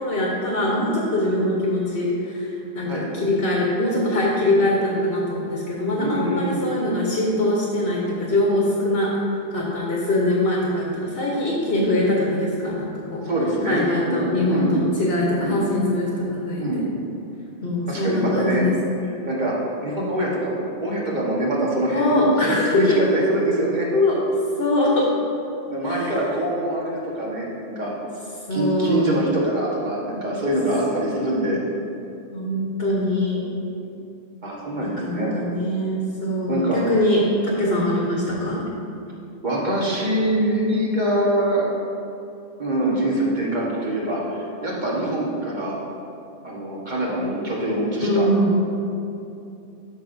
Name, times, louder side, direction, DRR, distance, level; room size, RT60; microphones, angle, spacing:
voice 1, 0.0-9.2 9.5-13.2 13.7-16.8 17.6-18.7 21.9-23.0 23.9-24.2 24.6-25.1 25.8-26.1 28.5-29.2 32.3-33.4 34.8-38.7 48.0-48.5, left 1 dB, 65° left, -4 dB, 1.4 m, -22 dB
voice 2, 6.0-6.6 13.2-14.8 15.4-15.6 16.6-16.9 17.9-18.6 19.2-23.9 25.7-27.9 28.5-31.6 33.8-33.9 34.4-35.3 36.5-36.8 39.4-41.6 42.6-45.7 46.4-48.3, right 1 dB, 40° right, -4 dB, 1.6 m, -24 dB
12.0 x 6.3 x 2.7 m, 2.7 s
omnidirectional pair, 1.2 m